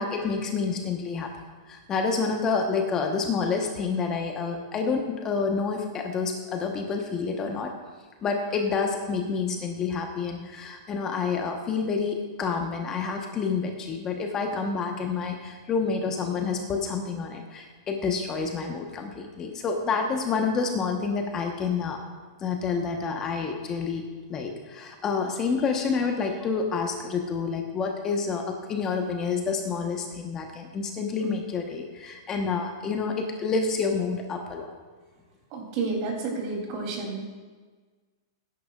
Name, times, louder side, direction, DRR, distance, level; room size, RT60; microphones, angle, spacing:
voice 1, 0.0-1.3 1.6-7.7 8.2-22.0 22.4-24.0 24.3-34.7, left 5 dB, 25° left, 3 dB, 1.2 m, -28 dB
voice 2, 35.5-37.2, right 3 dB, 45° right, 0 dB, 3.2 m, -30 dB
17.5 x 10.0 x 2.5 m, 1.4 s
hypercardioid pair, 135°, 2 cm